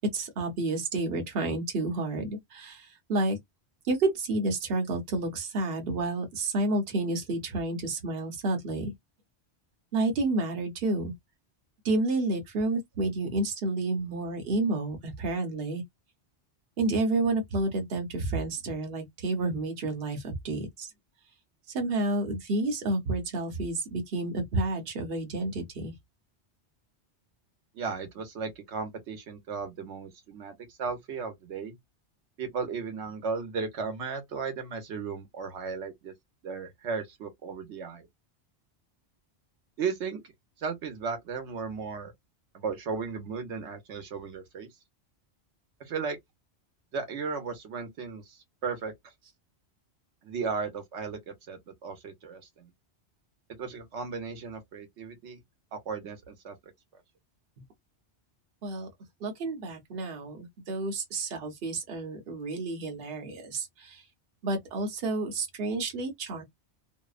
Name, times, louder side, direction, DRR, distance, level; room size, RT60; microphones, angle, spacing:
voice 1, 0.1-3.4 3.9-8.9 9.9-11.1 11.8-15.8 16.8-20.9 21.7-25.9 58.6-58.9 59.2-64.0 64.4-66.4, right 2 dB, 60° right, 1.0 m, -30 dB
voice 2, 27.7-31.8 32.4-36.1 36.4-38.1 39.8-40.2 40.6-42.1 42.5-44.7 45.8-46.2 46.9-48.9 50.2-52.7 53.6-55.4 55.7-56.6, right 5 dB, 85° right, 1.1 m, -35 dB
2.7 x 2.1 x 2.3 m
omnidirectional pair, 1.1 m